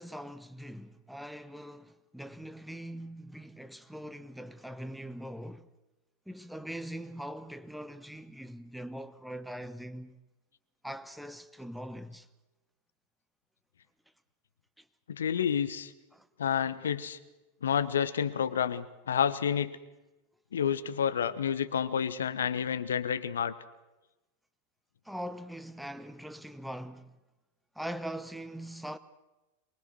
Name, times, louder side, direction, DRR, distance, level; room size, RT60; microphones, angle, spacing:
voice 1, 0.0-5.7 6.3-10.2 10.8-12.3 14.8-14.9 16.1-16.3 25.0-27.2 27.7-29.0, equal, ahead, 1.0 m, -42 dB
voice 2, 15.1-15.9 16.4-17.2 17.6-19.8 20.5-23.5, left 8 dB, 65° left, 1.0 m, -29 dB
23.5 x 21.0 x 6.3 m
figure-of-eight pair, 90°, 0 cm